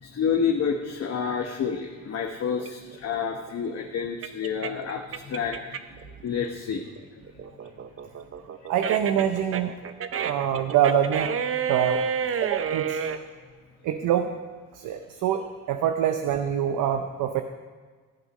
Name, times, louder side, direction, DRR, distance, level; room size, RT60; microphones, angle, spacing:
voice 1, 0.0-5.8 6.0-6.9, left 6 dB, 55° left, 3 dB, 1.0 m, -29 dB
sound 1, 2.6-6.0 6.4-13.2, right 7 dB, 45° right, 0.8 m, -30 dB
voice 2, 8.7-9.7 10.2-11.3 11.7-12.0 12.4-13.0 13.8-14.3 14.7-17.4, right 10 dB, 85° right, 7 dB, 0.7 m, -25 dB
14.5 x 8.0 x 5.4 m, 1.5 s
cardioid pair, 90°, 30 cm